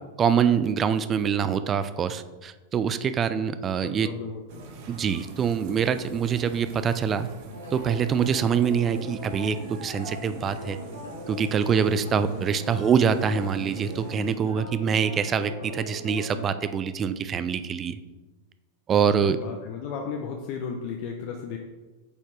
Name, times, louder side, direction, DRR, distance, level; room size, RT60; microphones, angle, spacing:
voice 1, 0.2-4.1 4.9-7.3 7.7-10.8 11.3-18.0 18.9-19.4, right 7 dB, 25° right, 12 dB, 0.3 m, -25 dB
voice 2, 3.8-4.4 19.2-21.6, left 6 dB, 45° left, 2 dB, 0.6 m, -34 dB
sound 1, 4.5-14.3, right 3 dB, 50° right, 0.9 m, -45 dB
sound 2, 7.5-16.7, equal, 80° left, 1.3 m, -39 dB
8.3 x 4.2 x 3.2 m, 1.2 s
figure-of-eight pair, 90°, 0 cm